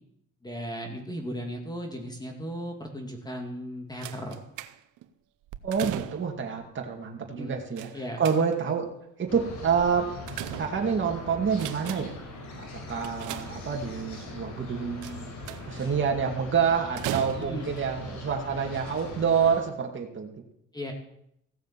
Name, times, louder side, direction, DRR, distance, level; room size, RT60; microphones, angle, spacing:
voice 1, 0.4-4.4 7.3-7.6 7.9-8.2 17.4-17.7 20.7-20.9, equal, 15° left, 2 dB, 2.4 m, -36 dB
sound 1, 4.0-5.1 5.5-6.5 7.8-8.8 9.8-11.1 11.5-12.3 13.0-14.0 15.0-15.8 17.0-17.8 18.6-18.8 19.1-19.2, right 13 dB, 85° right, 0.8 m, -38 dB
voice 2, 5.6-7.9 8.2-8.9 9.2-10.1 10.6-12.1 12.6-15.3 15.7-20.3, right 6 dB, 40° right, 1 dB, 2.2 m, -27 dB
sound 2, 9.3-19.6, left 2 dB, 75° left, 4.7 m, -41 dB
16.0 x 7.2 x 7.5 m, 0.76 s
cardioid pair, 90°, 30 cm